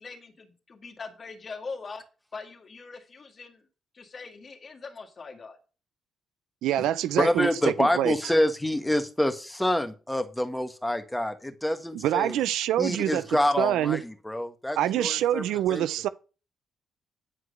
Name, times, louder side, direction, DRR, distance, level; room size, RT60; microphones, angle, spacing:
voice 1, 0.0-2.0 2.3-3.6 3.9-5.6, left 4 dB, 45° left, 2.0 m, -42 dB
voice 2, 6.6-8.1 11.9-13.2 13.6-14.0 14.8-16.1, right 12 dB, 85° right, 0.4 m, -25 dB
voice 3, 7.2-12.4 12.8-15.4 15.7-15.9, left 1 dB, 5° left, 1.6 m, -27 dB
9.9 x 4.7 x 6.5 m
supercardioid pair, 65°, 0 cm